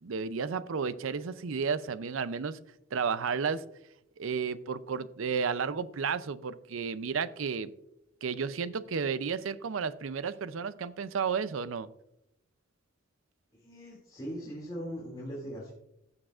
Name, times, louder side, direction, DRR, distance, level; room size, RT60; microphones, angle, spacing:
voice 1, 0.0-2.6 2.9-3.6 4.2-7.7 8.2-11.9, right 6 dB, 75° right, 15 dB, 0.5 m, -32 dB
voice 2, 13.6-15.7, equal, 20° left, -6 dB, 2.6 m, -40 dB
15.0 x 7.3 x 2.5 m, 0.80 s
head